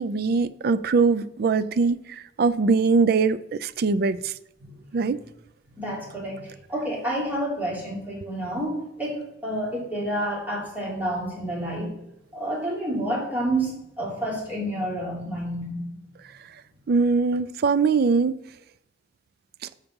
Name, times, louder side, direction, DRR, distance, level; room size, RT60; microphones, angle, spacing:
voice 1, 0.0-4.3 4.9-5.2 16.9-18.4, right 4 dB, 60° right, 0.4 m, -22 dB
voice 2, 5.7-11.9 12.3-16.0, right 1 dB, 10° right, 3.0 m, -29 dB
6.6 x 5.3 x 5.9 m
head